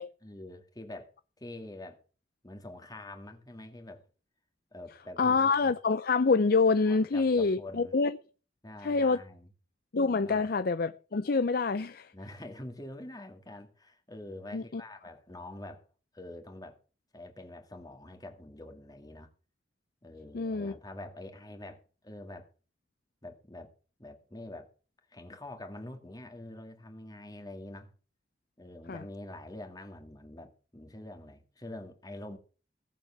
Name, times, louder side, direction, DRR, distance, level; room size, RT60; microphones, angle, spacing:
voice 1, 0.2-2.0 2.4-4.0 4.7-5.7 6.9-7.9 8.6-9.5 10.2-10.5 12.1-15.8 16.1-16.8 17.1-19.3 20.0-22.5 23.2-23.7 24.0-24.7 25.1-27.9 28.6-32.4, left 1 dB, 20° left, 2.1 m, -45 dB
voice 2, 5.2-8.2 8.8-9.2 9.9-12.1 14.5-14.8 20.3-20.7 28.9-29.0, left 4 dB, 55° left, 0.6 m, -26 dB
17.5 x 7.4 x 7.2 m
head